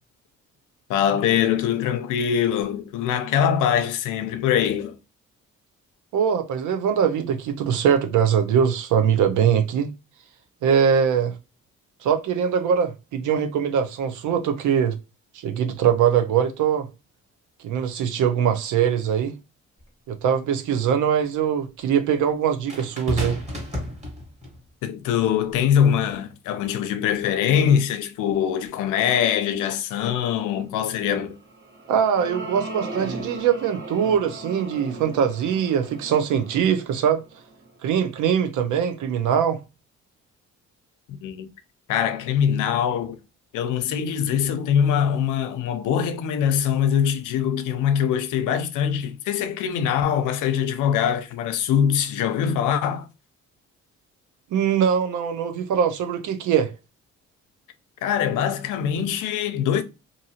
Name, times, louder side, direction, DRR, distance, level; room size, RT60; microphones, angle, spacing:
voice 1, 0.9-4.9 24.8-31.4 41.1-41.5 41.9-43.2 43.5-53.1 58.0-59.8, left 8 dB, 90° left, 0.6 m, -23 dB
voice 2, 6.1-9.9 10.6-11.3 12.0-15.0 15.3-16.9 17.6-19.3 20.1-23.4 31.9-37.2 37.8-39.6 54.5-56.7, right 8 dB, 80° right, 0.7 m, -22 dB
sound 1, 19.8-19.9 22.7-24.6 25.5-25.7, left 1 dB, 20° right, 1.5 m, -31 dB
sound 2, 31.3-37.9, right 2 dB, 40° right, 1.2 m, -37 dB
2.7 x 2.6 x 2.8 m
cardioid pair, 90°, 30 cm